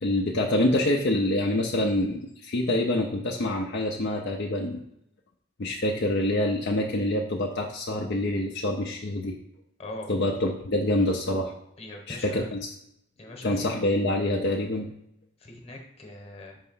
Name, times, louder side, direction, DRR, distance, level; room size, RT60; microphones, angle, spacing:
voice 1, 0.0-4.8 5.6-9.4 10.1-11.5 12.1-12.7 13.4-14.9, left 1 dB, 55° left, 0 dB, 0.6 m, -26 dB
voice 2, 9.8-10.1 11.8-12.5 13.2-13.7 15.4-16.6, left 1 dB, 30° left, 2 dB, 1.1 m, -41 dB
5.5 x 3.3 x 5.5 m, 0.76 s
head